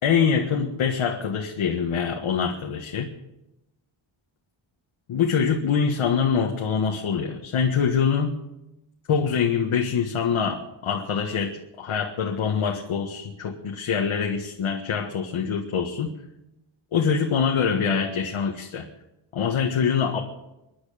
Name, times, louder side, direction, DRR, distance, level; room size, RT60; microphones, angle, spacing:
voice 1, 0.0-3.1 5.1-8.4 9.1-16.1 16.9-18.9 19.3-20.2, left 6 dB, 90° left, 1 dB, 1.7 m, -24 dB
24.0 x 11.0 x 5.1 m, 0.91 s
wide cardioid pair, 150°, 48 cm